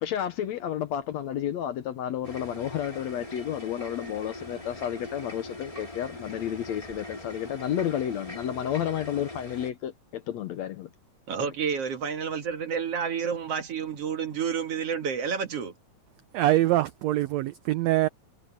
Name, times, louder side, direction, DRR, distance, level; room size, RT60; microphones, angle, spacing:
voice 1, 0.0-10.9, left 10 dB, 70° left, 1.9 m, -31 dB
sound 1, 2.2-9.7, left 1 dB, 10° left, 2.5 m, -41 dB
voice 2, 11.3-15.7, right 6 dB, 50° right, 2.4 m, -30 dB
voice 3, 16.3-18.1, right 15 dB, 85° right, 1.5 m, -24 dB
omnidirectional pair, 3.8 m